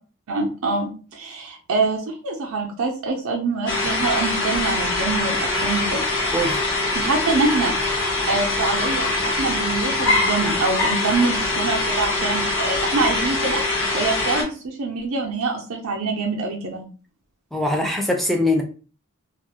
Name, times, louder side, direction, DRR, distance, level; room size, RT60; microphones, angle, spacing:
voice 1, 0.3-6.1 6.9-7.7 8.3-13.6 13.9-16.8, right 3 dB, 85° right, 0 dB, 0.5 m, -25 dB
sound 1, 3.7-14.4, left 2 dB, 75° left, 1.0 m, -23 dB
voice 2, 17.5-18.6, left 1 dB, ahead, 2 dB, 0.3 m, -22 dB
2.4 x 2.0 x 2.8 m, 0.37 s
head